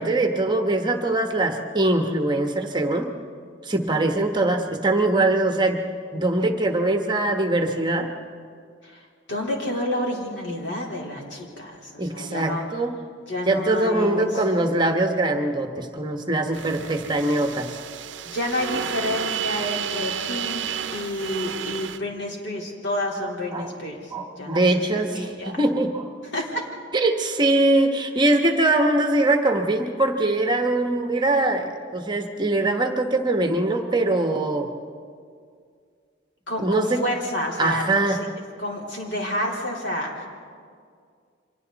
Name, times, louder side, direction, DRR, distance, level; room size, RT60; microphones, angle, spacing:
voice 1, 0.0-3.1 3.6-5.8 6.1-8.1 12.0-12.9 13.5-17.7 23.5-23.7 24.1-26.1 26.9-34.7 36.6-37.0 37.6-38.2, right 2 dB, 25° right, 4 dB, 1.2 m, -22 dB
voice 2, 9.3-12.6 13.3-14.4 18.2-20.6 20.9-24.6 25.1-25.6 26.3-26.6 36.5-38.3 38.6-40.3, left 1 dB, 65° left, -2 dB, 3.9 m, -29 dB
sound 1, 16.5-22.0, right 8 dB, 70° right, 0.6 m, -31 dB
30.0 x 25.0 x 4.1 m, 2.2 s
head